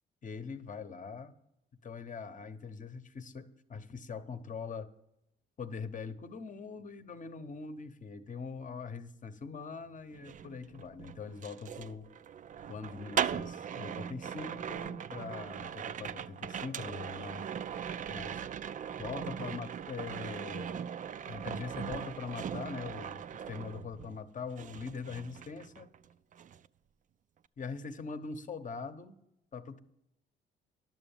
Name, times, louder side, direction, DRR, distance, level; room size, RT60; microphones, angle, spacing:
voice 1, 0.2-1.3 1.8-4.9 5.6-12.1 12.7-17.5 18.0-18.4 19.0-20.8 21.2-25.9 27.6-29.2 29.5-29.8, left 5 dB, 40° left, 10 dB, 0.9 m, -42 dB
sound 1, 10.1-24.3 24.6-26.0 26.3-26.7, right 8 dB, 40° right, 0.4 m, -39 dB
11.0 x 6.9 x 7.2 m, 0.83 s
cardioid pair, 90°, 20 cm